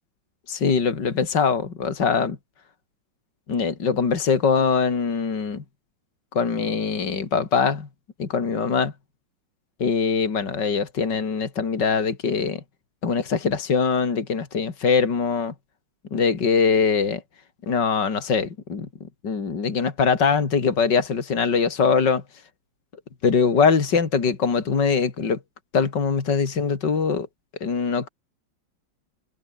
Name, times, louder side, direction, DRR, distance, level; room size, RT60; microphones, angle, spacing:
voice 1, 0.5-2.4 3.5-5.6 6.4-7.9 8.2-8.9 9.8-12.6 13.0-15.5 16.1-17.2 17.7-18.9 19.2-22.2 23.2-25.4 25.7-27.3 27.6-28.1, left 5 dB, 60° left, 3.4 m, -22 dB
omnidirectional pair, 2.2 m